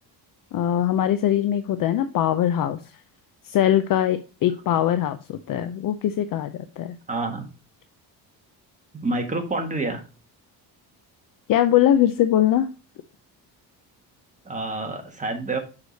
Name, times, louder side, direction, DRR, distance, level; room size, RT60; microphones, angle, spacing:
voice 1, 0.5-2.8 3.4-7.0 11.5-12.7, left 11 dB, 55° left, 10 dB, 0.6 m, -21 dB
voice 2, 7.1-7.5 9.0-10.0 14.4-15.6, right 2 dB, 20° right, 4 dB, 1.4 m, -28 dB
6.5 x 4.8 x 4.0 m, 0.33 s
cardioid pair, 140°, 40 cm